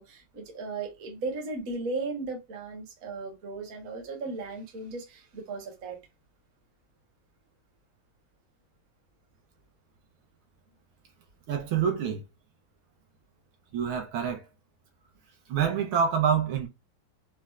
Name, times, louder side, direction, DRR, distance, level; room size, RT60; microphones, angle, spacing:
voice 1, 0.0-6.0, right 3 dB, 50° right, 1.1 m, -36 dB
voice 2, 11.5-12.2 13.7-14.4 15.5-16.7, right 7 dB, 75° right, 1.4 m, -26 dB
4.2 x 2.0 x 2.3 m
omnidirectional pair, 2.4 m